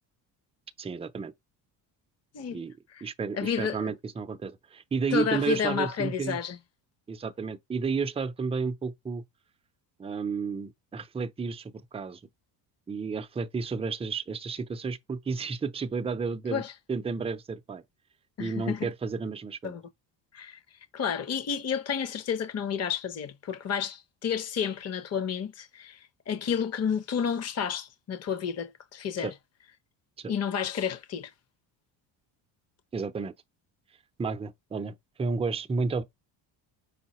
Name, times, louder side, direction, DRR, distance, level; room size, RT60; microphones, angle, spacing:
voice 1, 0.8-1.3 2.5-2.7 3.0-6.4 7.1-9.2 10.0-12.2 12.9-17.8 18.4-19.8 29.2-29.3 30.2-30.3 32.9-33.3 34.2-36.0, right 5 dB, 15° right, 0.5 m, -32 dB
voice 2, 3.4-3.9 5.1-6.6 16.5-16.7 18.4-18.9 19.6-19.8 20.3-20.6 20.9-29.3 30.3-31.3, left 7 dB, 35° left, 0.9 m, -31 dB
5.7 x 2.2 x 4.2 m
cardioid pair, 110°, 46 cm